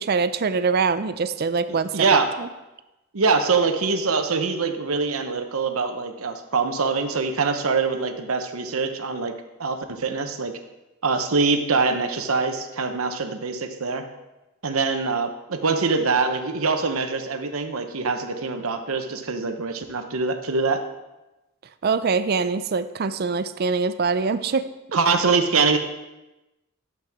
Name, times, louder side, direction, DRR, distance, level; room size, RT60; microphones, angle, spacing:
voice 1, 0.0-2.5 21.8-24.7, right 4 dB, 45° right, 12 dB, 0.4 m, -24 dB
voice 2, 1.7-2.3 3.1-9.3 9.6-10.5 11.0-14.0 14.6-20.8 24.9-25.8, right 4 dB, 85° right, 7 dB, 0.9 m, -24 dB
12.0 x 7.7 x 3.6 m, 1.0 s
head